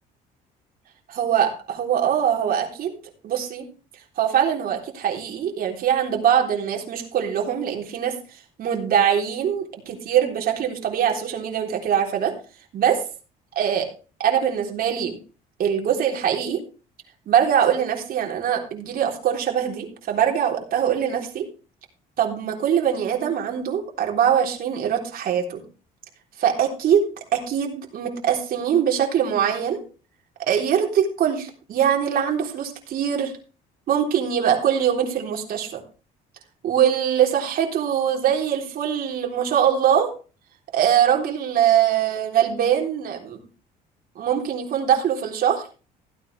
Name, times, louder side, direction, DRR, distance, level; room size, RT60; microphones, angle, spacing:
voice 1, 1.1-3.0 3.2-3.7 4.2-8.1 8.6-12.3 12.7-13.0 13.6-13.9 14.2-15.2 15.6-16.6 17.3-21.5 22.2-25.6 26.4-29.8 30.4-33.3 33.9-35.8 36.6-40.1 40.7-43.4 44.2-45.6, right 9 dB, 60° right, 2 dB, 3.7 m, -22 dB
15.5 x 9.5 x 3.4 m, 0.35 s
cardioid pair, 110°, 17 cm